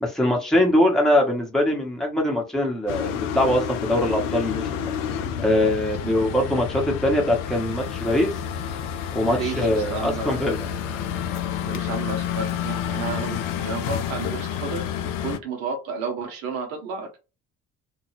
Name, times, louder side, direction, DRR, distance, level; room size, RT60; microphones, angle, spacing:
voice 1, 0.0-4.9 5.4-8.3 9.1-10.7, left 1 dB, ahead, 0.9 m, -22 dB
sound 1, 2.9-15.4, left 9 dB, 55° left, 0.5 m, -29 dB
voice 2, 9.2-10.5 11.6-14.9 15.2-17.2, right 4 dB, 70° right, 0.8 m, -32 dB
2.3 x 2.2 x 3.1 m
figure-of-eight pair, 50°, 40 cm